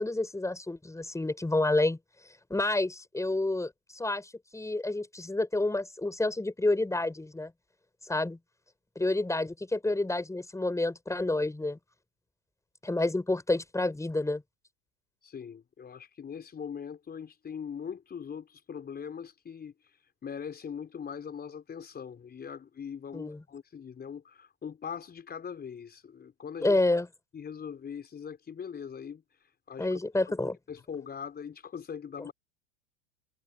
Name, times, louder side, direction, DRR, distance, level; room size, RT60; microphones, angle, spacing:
voice 1, 0.0-2.0 2.5-7.5 8.0-8.4 9.0-11.8 12.8-14.4 23.1-23.4 26.6-27.1 29.8-30.6 32.2-32.3, left 2 dB, 10° left, 7.5 m, -29 dB
voice 2, 15.2-26.8 27.3-30.0 30.3-30.4 30.7-32.3, left 7 dB, 25° left, 5.4 m, -41 dB
hypercardioid pair, 90°, 37 cm